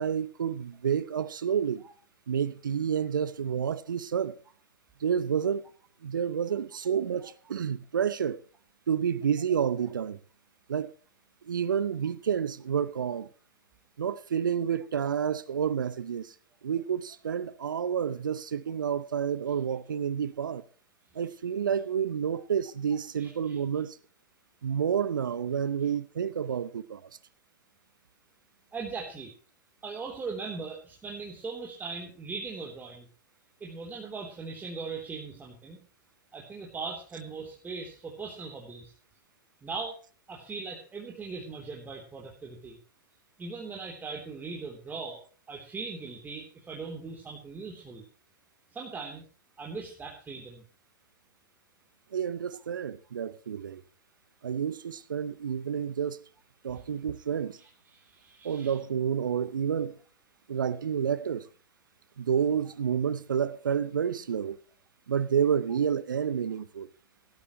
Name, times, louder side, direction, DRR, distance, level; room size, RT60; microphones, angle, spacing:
voice 1, 0.0-1.8 2.3-4.4 5.0-5.6 6.0-8.4 8.9-10.2 10.7-10.9 11.5-13.3 14.0-16.3 16.6-20.6 21.2-24.0 24.6-27.0 52.1-53.8 54.4-56.2 56.6-57.6 58.4-60.0 60.5-61.5 62.2-64.6 65.1-66.9, right 8 dB, 75° right, 0.8 m, -29 dB
voice 2, 23.2-23.6 28.7-29.3 29.8-33.1 33.6-35.8 36.3-38.9 39.6-40.0 40.3-42.8 43.4-48.0 48.7-49.2 49.6-50.6 56.7-56.8 57.6-58.8 62.7-62.8, right 4 dB, 15° right, 3.5 m, -40 dB
18.0 x 13.0 x 3.1 m
figure-of-eight pair, 100°, 11 cm